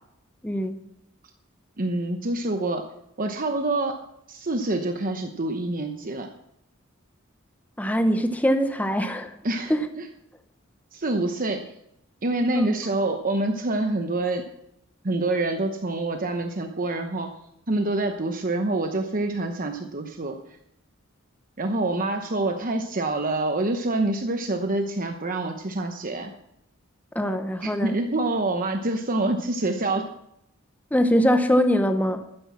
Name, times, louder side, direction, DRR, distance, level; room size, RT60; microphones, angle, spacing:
voice 1, 0.4-0.8 7.8-9.3 9.7-9.9 12.5-12.7 27.1-28.0 30.9-32.3, equal, 10° left, 7 dB, 0.8 m, -22 dB
voice 2, 1.8-2.8 3.2-4.0 4.3-6.3 9.4-9.7 10.0-10.1 10.9-11.7 12.2-14.4 15.0-17.3 17.7-20.4 21.6-26.3 27.6-30.1, right 2 dB, 40° right, 5 dB, 1.0 m, -26 dB
12.5 x 10.0 x 6.1 m, 0.80 s
head